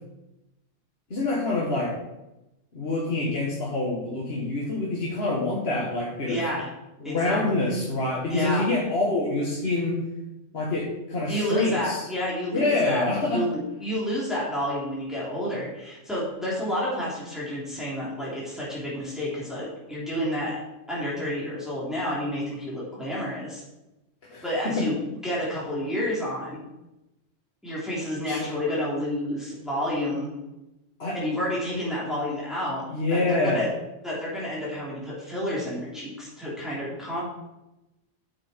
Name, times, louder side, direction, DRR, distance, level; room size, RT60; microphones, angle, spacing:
voice 1, 1.1-2.0 2.7-6.4 7.0-10.0 10.5-12.0 12.5-13.5 24.2-24.9 28.3-28.5 31.0-31.2 32.9-33.7, left 2 dB, 55° left, -5 dB, 1.8 m, -26 dB
voice 2, 6.2-6.7 7.0-7.7 8.3-8.7 11.3-20.6 20.9-23.6 24.4-25.0 25.2-26.6 27.6-30.3 31.1-33.7 34.0-37.2, equal, ahead, -7 dB, 3.3 m, -30 dB
9.8 x 7.2 x 4.5 m, 0.95 s
omnidirectional pair, 1.3 m